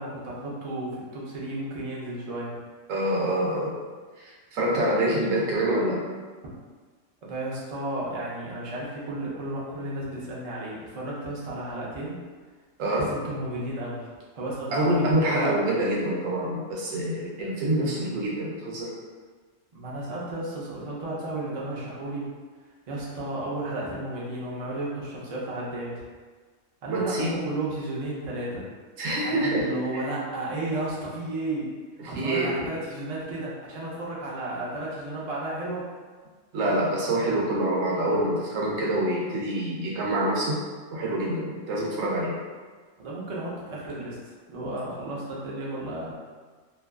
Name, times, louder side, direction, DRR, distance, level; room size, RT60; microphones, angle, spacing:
voice 1, 0.0-2.5 7.2-12.2 12.9-14.1 14.3-15.5 19.7-22.3 22.9-26.0 26.8-28.7 29.2-31.7 32.1-35.9 43.0-46.2, right 2 dB, 50° right, -5 dB, 0.4 m, -33 dB
voice 2, 2.9-3.7 4.2-6.0 12.8-13.1 14.7-18.9 26.9-27.4 29.0-29.7 29.9-30.0 32.0-32.5 36.5-40.6 40.9-42.4, right 1 dB, 90° right, -3 dB, 1.0 m, -26 dB
2.7 x 2.3 x 2.3 m, 1.5 s
omnidirectional pair, 1.3 m